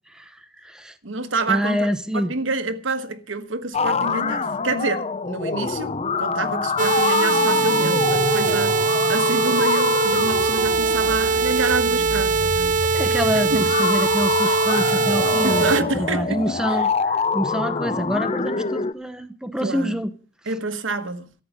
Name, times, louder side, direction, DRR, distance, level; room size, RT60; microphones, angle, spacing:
voice 1, 0.1-0.9 1.5-2.3 12.6-20.1 20.5-20.6, equal, 5° right, 0.9 m, -27 dB
voice 2, 1.0-1.9 2.1-8.8 9.1-12.8 13.5-13.9 15.4-16.4 16.7-16.8 19.6-19.9 20.5-21.3, right 3 dB, 80° right, 1.4 m, -27 dB
sound 1, 3.7-18.9, left 4 dB, 30° left, 0.6 m, -25 dB
sound 2, 6.8-15.8, right 5 dB, 40° right, 0.7 m, -21 dB
13.5 x 9.5 x 6.8 m
head